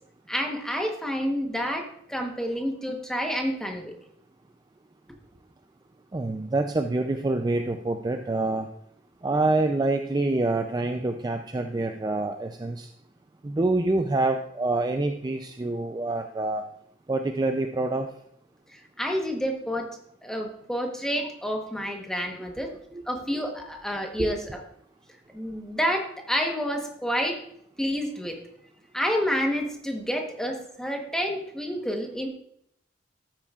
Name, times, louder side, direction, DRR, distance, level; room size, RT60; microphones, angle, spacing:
voice 1, 0.3-3.9 18.7-22.7 23.1-24.6 25.3-27.4 27.8-28.4 28.9-32.3, equal, 5° left, 2 dB, 1.0 m, -29 dB
voice 2, 6.1-8.7 9.2-12.9 13.4-16.6 17.1-18.1 24.2-24.3, right 2 dB, 20° right, 5 dB, 0.4 m, -26 dB
13.0 x 8.9 x 2.4 m, 0.71 s
head